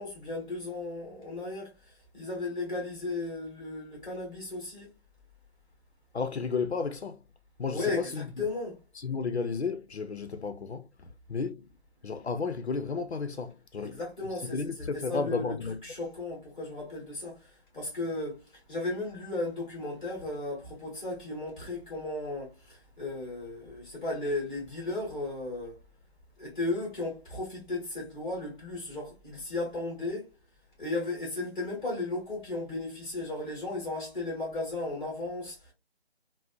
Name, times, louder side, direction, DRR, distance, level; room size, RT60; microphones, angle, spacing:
voice 1, 0.0-4.9 7.7-8.8 13.8-25.8 26.4-30.3 30.8-35.7, left 2 dB, 5° left, 0.8 m, -35 dB
voice 2, 6.1-7.2 7.6-8.3 9.0-11.7 12.0-14.0 14.5-15.8, left 4 dB, 85° left, 0.5 m, -33 dB
2.6 x 2.0 x 2.4 m
figure-of-eight pair, 150°, 32 cm